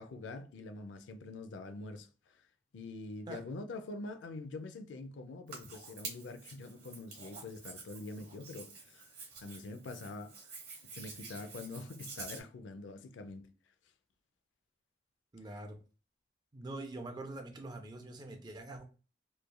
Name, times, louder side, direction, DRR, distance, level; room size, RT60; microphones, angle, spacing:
voice 1, 0.0-2.4 2.7-9.0 9.4-10.3 10.9-13.5, left 2 dB, 90° left, 0.4 m, -45 dB
Hands, 5.5-12.4, right 4 dB, 55° right, 1.1 m, -49 dB
voice 2, 15.3-15.8 16.5-18.8, right 2 dB, 25° right, 0.4 m, -44 dB
3.1 x 2.3 x 2.2 m
head